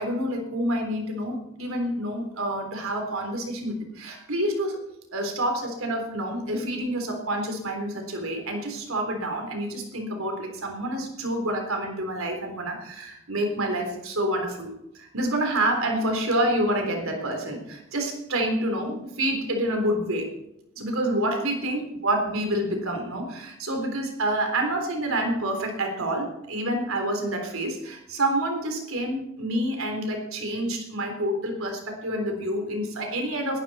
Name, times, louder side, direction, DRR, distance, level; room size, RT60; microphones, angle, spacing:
voice 1, 0.0-4.8 5.1-14.7 14.9-20.3 20.8-33.6, right 1 dB, 70° right, 3 dB, 3.7 m, -28 dB
20.0 x 11.5 x 4.3 m, 0.82 s
head